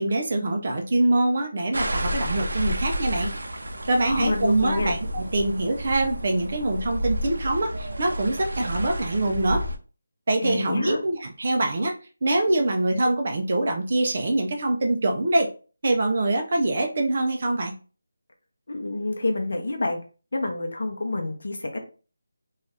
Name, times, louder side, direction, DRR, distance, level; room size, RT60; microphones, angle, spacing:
voice 1, 0.0-3.3 3.8-9.7 10.3-15.5 15.8-17.7, right 2 dB, 30° right, 3 dB, 0.4 m, -24 dB
sound 1, 1.7-9.8, equal, 85° right, 0.5 m, -31 dB
voice 2, 4.0-5.0 10.4-11.0 18.7-20.0 20.3-21.8, left 2 dB, 50° left, 3 dB, 0.7 m, -28 dB
2.6 x 2.3 x 3.2 m, 0.36 s
figure-of-eight pair, 180°, 0 cm